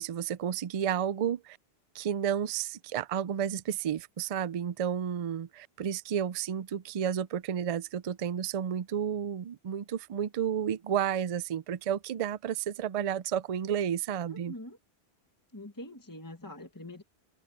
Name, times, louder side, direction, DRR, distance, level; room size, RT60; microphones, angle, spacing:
voice 1, 0.0-1.6 1.9-14.5, right 9 dB, 50° right, 0.4 m, -31 dB
voice 2, 14.3-14.8 15.5-17.0, left 1 dB, 20° left, 1.7 m, -44 dB
omnidirectional pair, 1.1 m